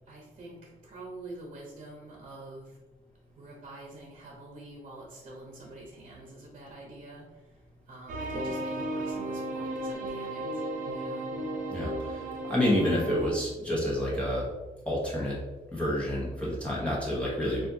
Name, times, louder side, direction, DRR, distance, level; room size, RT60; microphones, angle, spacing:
voice 1, 0.1-2.7 3.4-7.2 7.9-10.4 10.9-11.3, right 2 dB, 45° right, -2 dB, 1.1 m, -46 dB
sound 1, 8.1-13.3, right 1 dB, 65° right, 0.8 m, -34 dB
voice 2, 11.7-14.5 14.8-15.4 15.7-17.7, left 1 dB, 10° left, -6 dB, 1.1 m, -29 dB
7.4 x 2.6 x 2.8 m, 1.1 s
cardioid pair, 130°, 14 cm